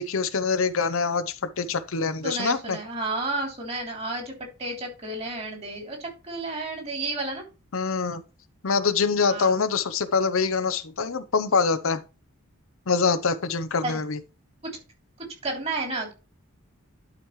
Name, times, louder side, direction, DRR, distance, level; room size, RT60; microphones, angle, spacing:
voice 1, 0.0-2.8 7.7-8.2 8.6-12.0 12.9-14.2, left 5 dB, 65° left, 0.7 m, -25 dB
voice 2, 2.2-4.3 4.6-7.4 9.2-9.6 13.8-13.9 14.6-14.7 15.2-16.1, right 2 dB, 30° right, 3.1 m, -31 dB
11.5 x 5.2 x 3.1 m
head